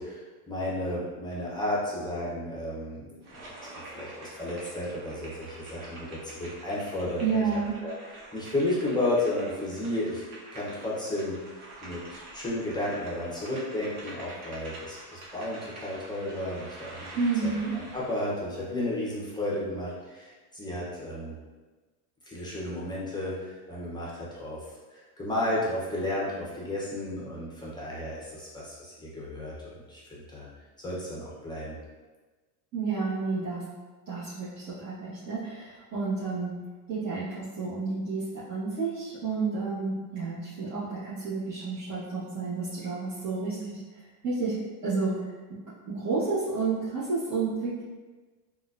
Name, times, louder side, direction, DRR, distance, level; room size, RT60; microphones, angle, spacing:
voice 1, 0.0-3.4 3.9-7.4 7.8-10.2 10.5-11.4 11.8-17.1 17.4-21.4 22.3-24.7 24.9-30.5 30.8-31.8, left 1 dB, 10° left, -6 dB, 0.7 m, -33 dB
sound 1, 3.2-18.3, right 2 dB, 65° right, 1.1 m, -46 dB
voice 2, 7.2-7.8 17.1-17.8 32.7-33.7 34.1-36.6 36.9-43.8 44.2-44.6 44.8-45.6 45.8-47.8, right 4 dB, 35° right, -12 dB, 1.2 m, -30 dB
3.8 x 2.4 x 2.5 m, 1.3 s
supercardioid pair, 115°, 47 cm